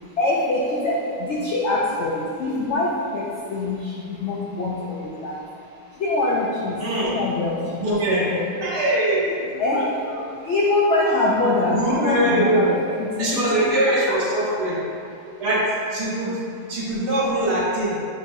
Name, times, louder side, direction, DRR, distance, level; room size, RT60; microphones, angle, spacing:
voice 1, 0.2-5.3 6.0-8.5 9.6-9.9 10.4-14.7, left 2 dB, 85° left, -3 dB, 0.6 m, -24 dB
voice 2, 6.8-7.2 7.8-8.3 8.6-9.8 11.7-12.6 13.2-14.8 15.4-16.4 16.7-17.9, right 1 dB, 90° right, -7 dB, 1.8 m, -22 dB
7.3 x 2.8 x 2.6 m, 2.5 s
omnidirectional pair, 1.7 m